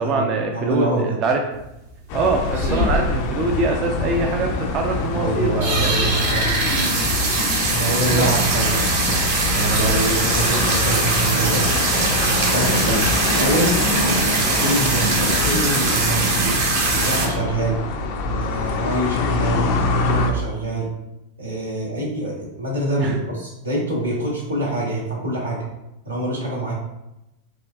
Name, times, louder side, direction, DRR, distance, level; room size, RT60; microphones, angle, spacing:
voice 1, 0.0-1.4 2.1-6.1 8.1-8.2 12.8-13.0 23.0-23.2, right 3 dB, 35° right, 2 dB, 0.4 m, -23 dB
voice 2, 0.5-1.2 5.1-6.5 7.7-11.6 12.3-16.5 16.9-17.8 18.2-19.6 20.0-20.9 21.4-25.6 26.0-26.7, right 1 dB, 80° right, -4 dB, 1.1 m, -25 dB
sound 1, 1.6-1.7 2.0-2.1 2.5-3.2 3.5-3.6 3.8-3.9 4.3-4.4 4.9-5.1 5.5-17.3, right 3 dB, 60° right, 1.0 m, -22 dB
sound 2, 2.1-20.3, left 3 dB, 45° left, 0.4 m, -25 dB
4.7 x 2.5 x 2.3 m, 0.91 s
figure-of-eight pair, 90°, 0 cm